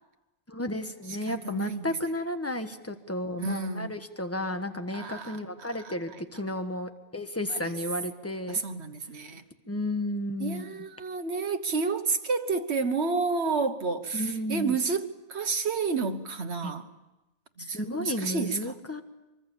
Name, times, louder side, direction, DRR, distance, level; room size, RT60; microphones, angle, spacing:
voice 1, 0.5-8.6 9.7-10.8 14.1-14.8 16.6-16.7 17.6-19.0, left 1 dB, 10° left, 1.4 m, -33 dB
voice 2, 1.3-1.9 3.4-3.9 4.9-5.9 7.5-7.7 8.5-9.4 10.4-16.9 17.6-18.6, right 4 dB, 65° right, 1.6 m, -30 dB
24.5 x 24.0 x 7.2 m
omnidirectional pair, 1.2 m